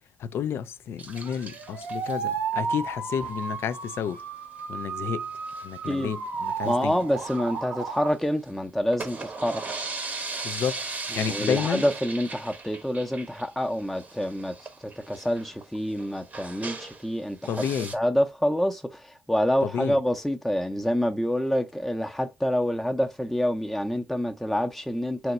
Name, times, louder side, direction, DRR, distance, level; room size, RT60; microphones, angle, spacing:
voice 1, 0.2-4.2 4.7-5.3 5.6-7.0 10.4-11.8 17.5-17.9 19.6-20.0, left 8 dB, 60° left, 0.3 m, -30 dB
sound 1, 1.0-2.1 3.4-3.6 3.9-4.0 4.2-4.3 4.6-4.7 5.3-5.9 6.4-8.3 8.8-17.1 17.4-17.9, right 3 dB, 30° right, 0.8 m, -38 dB
sound 2, 1.2-8.1, right 5 dB, 70° right, 0.7 m, -33 dB
voice 2, 6.6-9.8 11.2-14.5 14.8-17.4 17.9-25.3, equal, 5° left, 0.6 m, -27 dB
2.9 x 2.1 x 4.0 m
hypercardioid pair, 45°, 5 cm